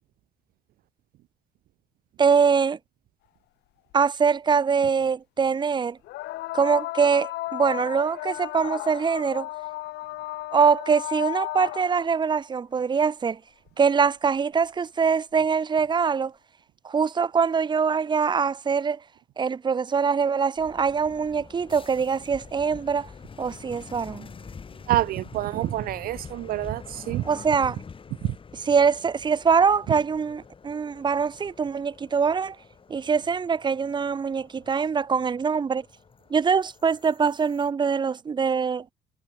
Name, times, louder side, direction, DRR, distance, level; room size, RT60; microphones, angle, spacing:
voice 1, 2.2-2.8 3.9-6.0 6.5-9.5 10.5-13.4 13.8-16.3 16.8-19.0 19.4-23.1 23.4-24.3 27.2-27.8 28.6-32.5 32.9-35.8 36.3-38.8, right 6 dB, 25° right, 0.9 m, -23 dB
sound 1, 3.9-4.0 6.0-12.2 13.7-13.8 14.6-14.7, left 18 dB, 80° left, 1.7 m, -34 dB
sound 2, 20.6-37.7, left 5 dB, 30° left, 6.3 m, -46 dB
voice 2, 24.9-27.2 28.2-28.3, right 15 dB, 60° right, 0.4 m, -27 dB
cardioid pair, 110°, 17 cm